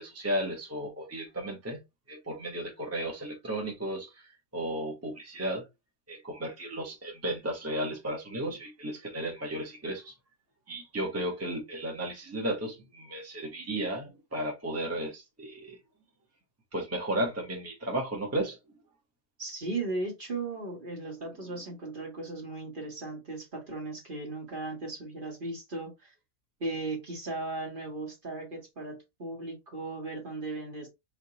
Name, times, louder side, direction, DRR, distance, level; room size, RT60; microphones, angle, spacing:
voice 1, 0.0-1.8 2.1-5.7 6.1-10.1 10.7-15.8 16.7-18.8, right 1 dB, 10° right, 1.1 m, -34 dB
voice 2, 19.4-26.1 26.6-30.9, right 2 dB, 40° right, 1.5 m, -37 dB
4.9 x 2.9 x 2.8 m
omnidirectional pair, 1.5 m